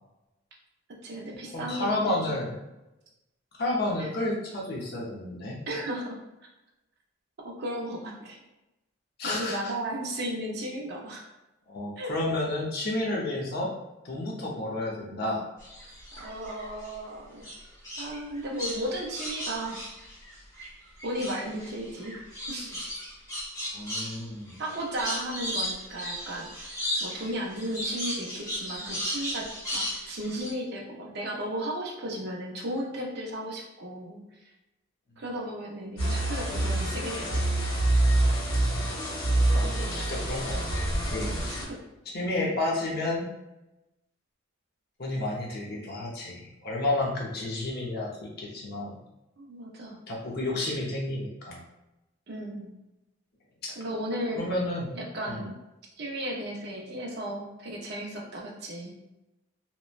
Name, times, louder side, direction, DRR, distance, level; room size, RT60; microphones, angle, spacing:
voice 1, 1.0-2.4 4.0-4.1 5.7-6.2 7.4-8.4 9.2-11.2 12.0-12.1 16.2-17.5 18.0-19.8 21.0-22.2 22.5-22.8 24.6-34.2 35.2-37.5 41.5-41.8 49.4-50.0 52.3-52.7 53.7-54.5 54.9-55.5 56.0-58.9, right 1 dB, 55° right, -2 dB, 0.5 m, -35 dB
voice 2, 1.5-2.6 3.6-5.6 9.2-9.7 11.7-13.7 14.0-15.5 23.7-24.6 39.5-41.6 42.1-43.3 45.0-48.9 50.1-51.6 53.6-53.7 54.4-54.9 55.3-55.5, left 2 dB, 50° left, -2 dB, 0.6 m, -31 dB
sound 1, 15.6-16.9 17.4-20.7 21.0-30.5, equal, 15° left, 0.9 m, -35 dB
sound 2, 36.0-41.6, right 1 dB, 80° left, 1.3 m, -26 dB
2.9 x 2.1 x 2.3 m, 0.97 s
head